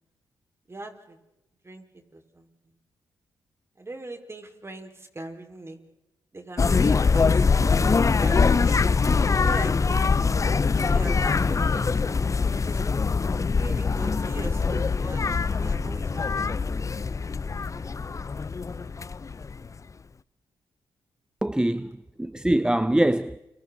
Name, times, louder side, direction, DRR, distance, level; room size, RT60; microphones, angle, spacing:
voice 1, 0.7-1.2 1.6-2.7 3.8-5.8 6.3-7.6 8.2-8.8 9.3-10.2 10.8-12.9 13.5-16.4, right 2 dB, 30° right, 5.0 m, -41 dB
sound 1, 6.6-19.7, left 4 dB, 35° left, 0.8 m, -23 dB
voice 2, 21.4-23.4, right 1 dB, 10° right, 0.7 m, -24 dB
30.0 x 25.5 x 4.1 m
supercardioid pair, 55°, 9 cm